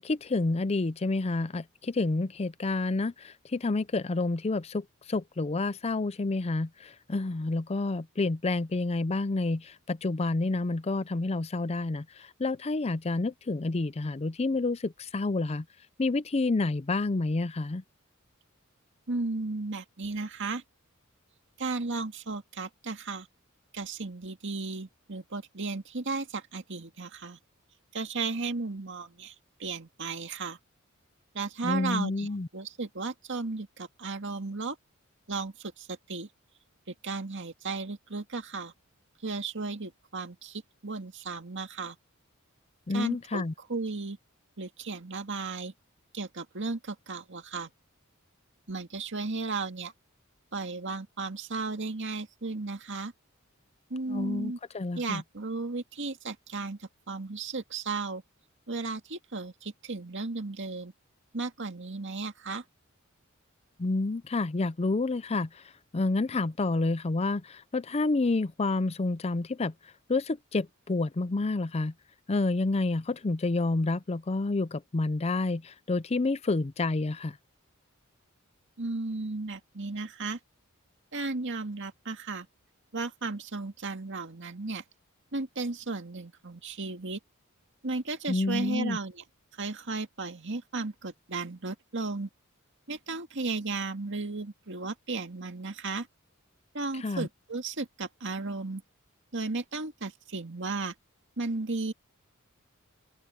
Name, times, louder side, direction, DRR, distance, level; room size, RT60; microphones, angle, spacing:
voice 1, 0.0-15.6 16.0-17.8 31.6-32.5 42.9-43.5 54.1-55.2 63.8-65.6 65.9-69.7 70.1-71.9 72.3-77.4 88.3-89.0 97.0-97.3, left 3 dB, 30° left, 0.5 m, -29 dB
voice 2, 19.1-20.6 21.6-23.3 23.7-27.4 27.9-29.3 29.6-30.6 31.3-34.8 35.3-36.3 36.9-38.7 39.2-42.0 42.9-44.2 44.6-45.7 46.1-47.7 48.7-49.9 50.5-53.1 53.9-54.6 55.0-58.2 58.7-60.9 61.3-62.6 78.8-80.4 81.1-82.5 82.9-84.8 85.3-87.2 87.8-89.2 89.6-92.3 92.9-96.1 96.7-98.8 99.3-100.9 101.4-101.9, right 3 dB, 60° right, 2.1 m, -35 dB
open air
head